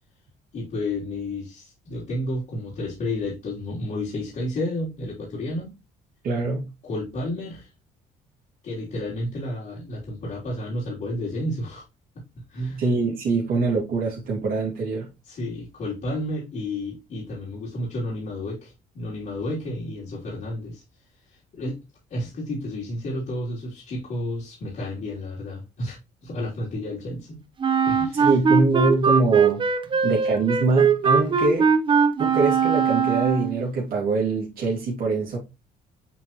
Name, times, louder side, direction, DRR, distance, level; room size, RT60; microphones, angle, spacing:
voice 1, 0.5-5.7 6.8-7.7 8.6-11.8 12.5-12.8 15.2-20.8 21.3-21.8 22.1-27.4 27.8-28.4, left 1 dB, 50° left, 3.2 m, -31 dB
voice 2, 6.2-6.7 12.8-15.1 28.1-29.6 30.0-31.7 32.2-35.4, right 3 dB, 60° right, 2.5 m, -24 dB
Wind instrument woodwind instrument, 27.6-33.6, right 5 dB, 30° right, 0.8 m, -21 dB
8.2 x 4.0 x 3.0 m
cardioid pair, 110°, 17 cm